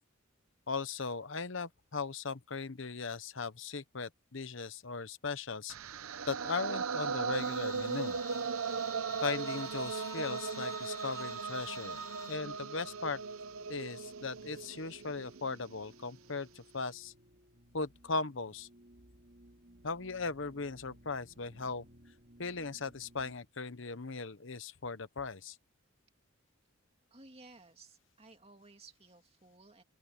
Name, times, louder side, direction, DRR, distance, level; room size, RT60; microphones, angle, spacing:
voice 1, 0.7-5.7 6.3-8.2 9.2-12.0 12.3-13.2 13.7-17.1 17.7-18.7 19.8-21.8 22.4-25.6, left 4 dB, 65° left, 1.0 m, -38 dB
sound 1, 5.7-15.8, right 5 dB, 85° right, 0.8 m, -38 dB
Bowed string instrument, 7.3-12.4, left 5 dB, 15° left, 0.4 m, -51 dB
sound 2, 7.4-23.4, equal, 45° right, 3.4 m, -62 dB
voice 2, 27.1-29.8, right 3 dB, 30° right, 2.8 m, -57 dB
open air
head